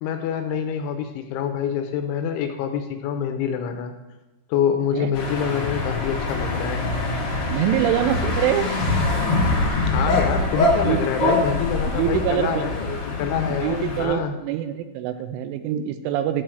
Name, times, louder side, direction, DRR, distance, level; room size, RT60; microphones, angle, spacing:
voice 1, 0.0-3.9 4.5-6.9 9.9-14.3, left 8 dB, 80° left, 6 dB, 2.9 m, -26 dB
sound 1, 5.1-14.0, left 2 dB, 55° left, 1.7 m, -24 dB
voice 2, 7.5-8.7 10.8-11.4 11.8-12.7 13.6-16.4, right 10 dB, 85° right, 10 dB, 2.9 m, -24 dB
11.5 x 4.5 x 6.3 m, 1.1 s
omnidirectional pair, 5.7 m